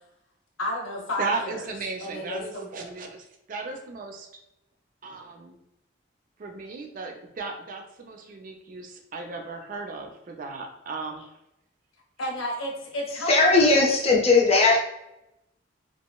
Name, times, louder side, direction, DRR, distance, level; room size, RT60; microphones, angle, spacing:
voice 1, 0.6-1.6 2.0-2.7 12.2-13.9, equal, 90° left, 0 dB, 0.8 m, -31 dB
voice 2, 1.2-4.3 5.0-5.6 6.4-11.2, right 3 dB, 45° right, 3 dB, 0.4 m, -35 dB
voice 3, 13.3-14.8, left 3 dB, 30° left, -1 dB, 0.5 m, -18 dB
2.9 x 2.4 x 2.2 m, 0.84 s
head